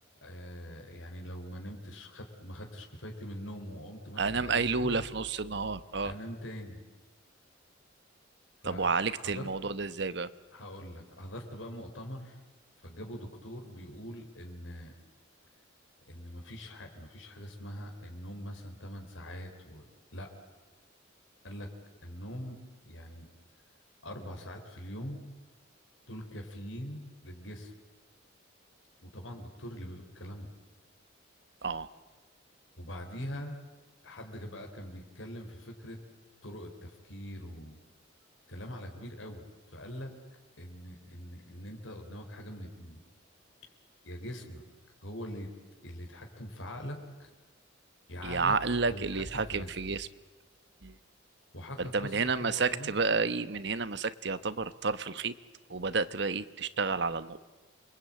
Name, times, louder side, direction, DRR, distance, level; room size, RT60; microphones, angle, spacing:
voice 1, 0.2-5.0 6.0-6.8 8.6-9.5 10.5-12.4 12.8-14.9 16.1-20.3 21.4-21.7 22.0-22.6 22.8-23.3 24.0-25.2 26.1-27.7 29.0-30.5 32.8-33.5 34.0-36.0 36.4-37.7 38.5-40.1 40.6-43.0 43.6-43.7 44.0-44.6 45.0-45.5 45.8-47.3 48.1-48.5 48.9-49.7 51.5-52.9, equal, 90° left, 2 dB, 4.1 m, -43 dB
voice 2, 4.2-6.1 8.6-10.3 31.6-31.9 48.2-50.1 50.8-51.0 51.8-55.3 55.7-57.4, right 4 dB, 60° right, 14 dB, 1.0 m, -30 dB
28.0 x 22.0 x 8.9 m, 1.3 s
head